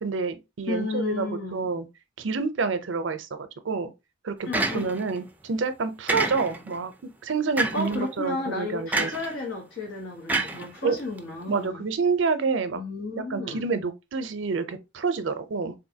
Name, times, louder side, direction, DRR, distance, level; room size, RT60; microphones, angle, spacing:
voice 1, 0.0-1.9 2.2-3.9 4.2-6.9 7.2-9.1 10.8-11.0 11.5-12.8 13.1-15.7, right 4 dB, 70° right, 0.5 m, -28 dB
voice 2, 0.7-1.7 4.4-4.9 7.7-11.8 12.7-13.7, left 3 dB, 80° left, 0.9 m, -33 dB
sound 1, 4.5-5.2 6.1-6.7 7.6-8.0 8.9-9.3 10.3-11.2, right 2 dB, 10° right, 0.4 m, -28 dB
3.7 x 2.6 x 2.7 m
head